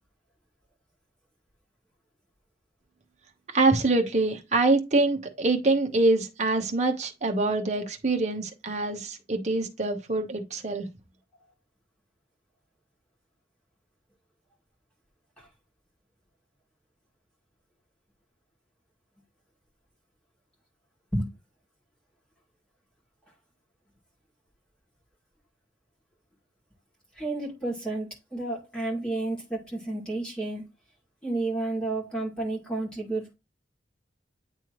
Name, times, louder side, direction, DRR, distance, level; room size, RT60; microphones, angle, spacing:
voice 1, 3.5-10.9, right 2 dB, 40° right, 1.1 m, -25 dB
voice 2, 27.2-30.6 31.2-33.3, right 2 dB, 5° left, 2.3 m, -31 dB
9.3 x 3.4 x 3.1 m
head